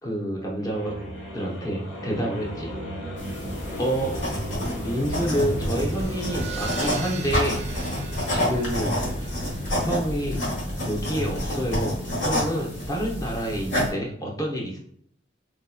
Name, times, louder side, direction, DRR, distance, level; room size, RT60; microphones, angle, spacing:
voice 1, 0.0-1.0 1.3-2.7 3.8-4.1 4.8-7.6 8.3-9.0 9.8-10.4 10.8-12.0 12.2-14.8, equal, 20° left, -2 dB, 0.7 m, -28 dB
sound 1, 0.6-13.9, equal, 90° left, 1.0 m, -36 dB
sound 2, 3.2-13.9, equal, 65° left, 1.3 m, -29 dB
sound 3, 5.6-12.7, right 4 dB, 35° right, 0.4 m, -41 dB
3.6 x 2.8 x 2.3 m, 0.63 s
head